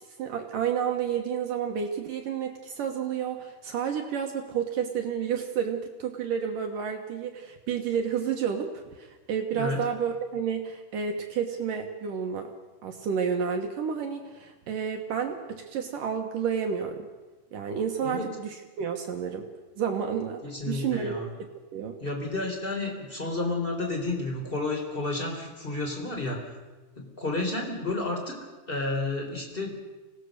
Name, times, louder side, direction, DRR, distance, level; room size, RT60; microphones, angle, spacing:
voice 1, 0.0-12.5 12.8-17.1 17.5-19.5 19.8-21.1 21.7-22.0, right 7 dB, 70° right, 4 dB, 2.1 m, -30 dB
voice 2, 9.5-9.8 18.0-18.2 20.4-21.3 22.0-26.5 26.9-28.4 28.7-29.8, left 2 dB, 10° left, 2 dB, 3.4 m, -31 dB
25.5 x 18.5 x 6.7 m, 1.2 s
omnidirectional pair, 5.6 m